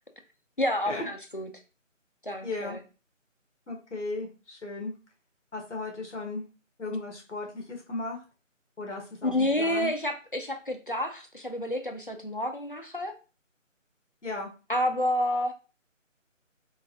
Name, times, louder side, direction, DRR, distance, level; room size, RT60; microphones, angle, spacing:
voice 1, 0.6-1.5 2.2-2.8 9.2-13.1 14.7-15.5, left 1 dB, 45° left, 4 dB, 0.5 m, -29 dB
voice 2, 2.4-2.8 3.7-4.9 5.5-6.4 6.8-8.2 8.8-9.9 14.2-14.5, left 2 dB, 65° left, 1 dB, 1.3 m, -35 dB
3.7 x 2.6 x 2.8 m, 0.33 s
figure-of-eight pair, 175°, 39 cm